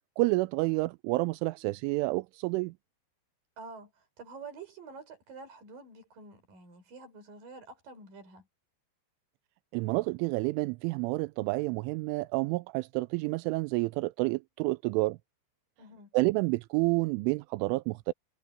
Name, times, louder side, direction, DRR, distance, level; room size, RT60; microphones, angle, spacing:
voice 1, 0.2-2.7 9.7-15.2 16.1-18.1, right 23 dB, 85° right, 2.8 m, -29 dB
voice 2, 3.6-3.9 4.2-8.5 15.8-16.1, right 4 dB, 45° right, 5.8 m, -48 dB
omnidirectional pair, 6.0 m